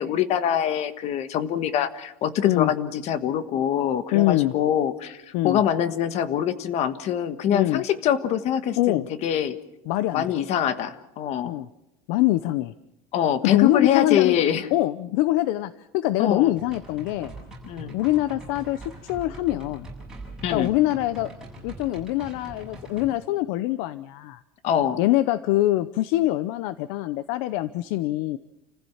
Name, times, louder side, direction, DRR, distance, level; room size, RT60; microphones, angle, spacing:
voice 1, 0.0-9.6 10.1-11.5 13.1-14.7 16.2-16.5 17.6-18.0 20.4-20.7 24.6-25.0, left 9 dB, 35° left, 12 dB, 1.4 m, -24 dB
voice 2, 4.1-4.5 5.3-5.6 7.5-7.8 8.8-9.1 9.9-10.2 11.4-11.7 12.1-12.7 13.4-14.4 14.7-17.3 17.9-19.9 20.5-21.3 21.6-24.4 25.0-28.4, left 16 dB, 55° left, 15 dB, 0.8 m, -24 dB
sound 1, 16.5-23.1, right 2 dB, 5° right, 7.3 m, -42 dB
29.5 x 15.0 x 7.2 m, 0.91 s
cardioid pair, 175°, 19 cm